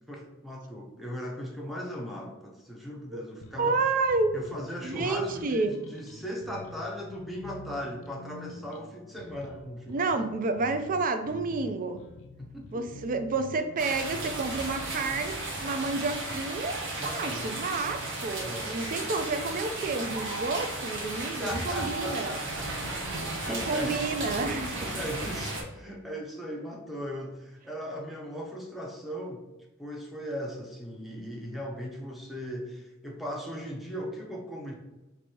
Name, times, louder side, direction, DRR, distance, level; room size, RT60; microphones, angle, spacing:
voice 1, 0.1-3.8 4.3-10.2 12.4-12.9 16.9-17.6 18.4-19.1 21.1-23.1 23.3-24.1 24.7-29.4 29.8-34.7, equal, ahead, -1 dB, 0.7 m, -38 dB
sound 1, 3.4-16.4, left 2 dB, 60° left, 0.4 m, -48 dB
voice 2, 3.6-4.4 4.8-5.8 9.9-12.0 12.7-22.4 23.5-24.8, right 3 dB, 40° right, 7 dB, 0.4 m, -30 dB
sound 2, 13.8-25.6, right 2 dB, 55° right, 0.9 m, -35 dB
sound 3, 18.5-25.8, right 3 dB, 75° right, 1.2 m, -43 dB
3.1 x 2.6 x 4.2 m, 1.0 s
head